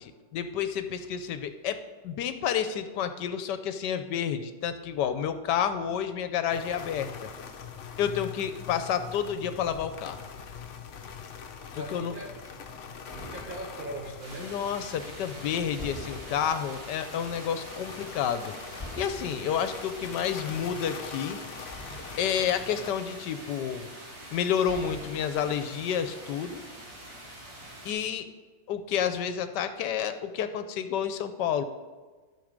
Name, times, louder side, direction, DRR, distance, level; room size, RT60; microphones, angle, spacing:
voice 1, 0.0-7.1 8.0-10.2 11.8-12.1 14.4-18.5 19.0-21.4 22.2-23.9 24.3-26.6 27.8-28.3 28.7-31.6, left 8 dB, 75° left, 10 dB, 1.2 m, -30 dB
sound 1, 6.5-22.9, left 6 dB, 55° left, 0.9 m, -43 dB
voice 2, 11.7-12.4 13.1-14.6, right 1 dB, 40° right, 1 dB, 0.7 m, -40 dB
sound 2, 12.4-15.2 15.8-17.7 18.1-18.2 18.7-21.1 21.7-23.3 24.0-24.1 24.5-26.3, left 1 dB, ahead, 2.6 m, -47 dB
sound 3, 14.2-27.9, right 1 dB, 85° right, 2.9 m, -45 dB
12.0 x 6.2 x 5.1 m, 1.4 s
omnidirectional pair, 1.9 m